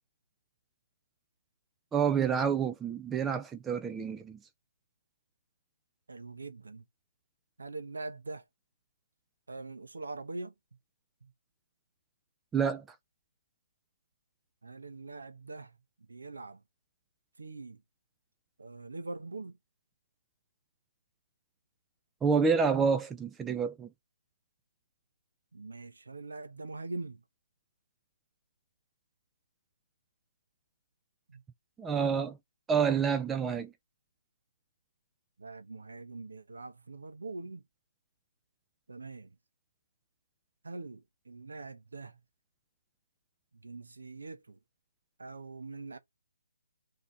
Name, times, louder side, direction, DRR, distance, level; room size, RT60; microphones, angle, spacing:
voice 1, 1.9-4.4 12.5-12.8 22.2-23.9 31.8-32.4 32.7-33.7, right 6 dB, 10° right, 0.3 m, -28 dB
voice 2, 6.1-6.8 7.6-8.4 9.5-10.5 11.2-11.3 14.6-16.6 17.4-17.8 18.6-19.6 25.5-27.2 31.3-31.4 35.4-37.6 38.9-39.3 40.6-42.2 43.5-44.6 45.2-46.0, right 3 dB, 80° right, 0.7 m, -43 dB
2.7 x 2.5 x 4.2 m
figure-of-eight pair, 145°, 0 cm